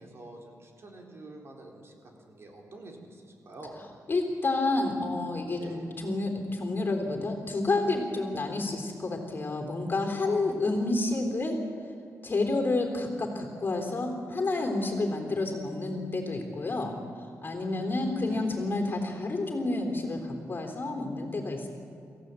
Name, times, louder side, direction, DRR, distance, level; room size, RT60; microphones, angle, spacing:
voice 1, 0.0-3.8 5.6-5.9 10.2-10.5 17.6-18.6, right 2 dB, 50° right, 1 dB, 4.0 m, -47 dB
voice 2, 4.1-11.6 12.2-16.9 17.4-21.7, left 2 dB, 40° left, 3 dB, 3.6 m, -29 dB
26.5 x 15.5 x 8.3 m, 2.6 s
wide cardioid pair, 115°, 6 cm